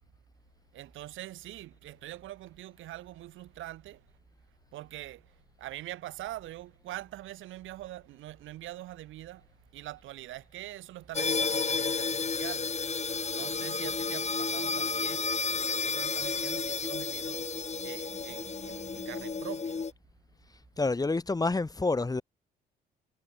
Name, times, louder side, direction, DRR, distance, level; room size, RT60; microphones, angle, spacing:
voice 1, 0.7-4.0 4.7-9.5 9.7-12.9 13.3-19.8, right 15 dB, 75° right, 2.2 m, -44 dB
sound 1, 11.1-19.9, left 5 dB, 35° left, 3.3 m, -32 dB
voice 2, 20.8-22.2, left 3 dB, 20° left, 1.3 m, -28 dB
supercardioid pair, 65°, 20 cm